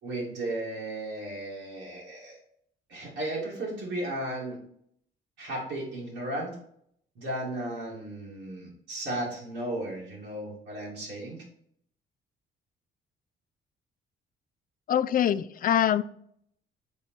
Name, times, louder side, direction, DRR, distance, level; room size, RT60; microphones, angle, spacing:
voice 1, 0.0-2.4 2.9-4.6 5.4-6.6 7.2-11.4, right 1 dB, 85° right, -5 dB, 2.6 m, -35 dB
voice 2, 14.9-16.0, left 10 dB, 45° left, 15 dB, 0.4 m, -24 dB
5.4 x 4.1 x 4.5 m, 0.68 s
cardioid pair, 90°, 20 cm